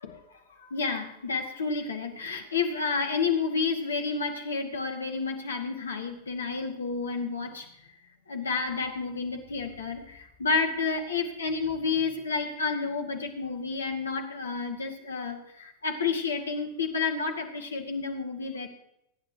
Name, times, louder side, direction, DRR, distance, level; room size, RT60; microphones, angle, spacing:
voice 1, 0.0-7.7 8.3-18.7, left 4 dB, 70° left, 4 dB, 2.3 m, -30 dB
26.5 x 10.5 x 3.0 m, 0.79 s
figure-of-eight pair, 90°, 0 cm